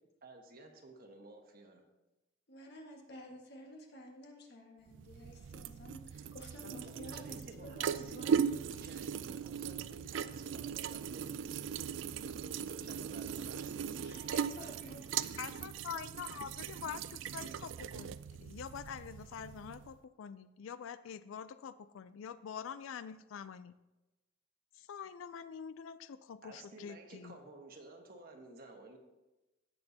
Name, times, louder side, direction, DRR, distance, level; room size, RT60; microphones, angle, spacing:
voice 1, 0.2-1.8 6.6-13.9 26.4-29.0, right 2 dB, 45° right, 3 dB, 1.4 m, -54 dB
voice 2, 2.5-8.3 13.9-15.4, equal, 55° left, 1 dB, 1.6 m, -51 dB
sound 1, 4.9-19.9, right 7 dB, 65° right, 0.3 m, -39 dB
voice 3, 15.4-23.8 24.7-27.3, left 7 dB, 80° left, 14 dB, 0.4 m, -45 dB
17.0 x 6.6 x 2.8 m, 1.0 s
head